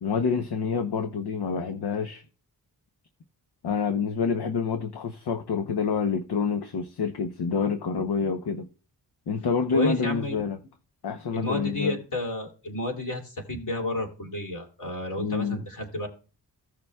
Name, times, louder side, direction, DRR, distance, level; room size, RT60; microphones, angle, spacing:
voice 1, 0.0-2.2 3.6-8.7 9.3-10.6 11.0-12.0 15.2-15.6, left 5 dB, 70° left, 0.9 m, -27 dB
voice 2, 9.7-10.4 11.3-16.1, left 1 dB, 45° left, 2.8 m, -31 dB
16.0 x 6.7 x 2.3 m
cardioid pair, 60°, 41 cm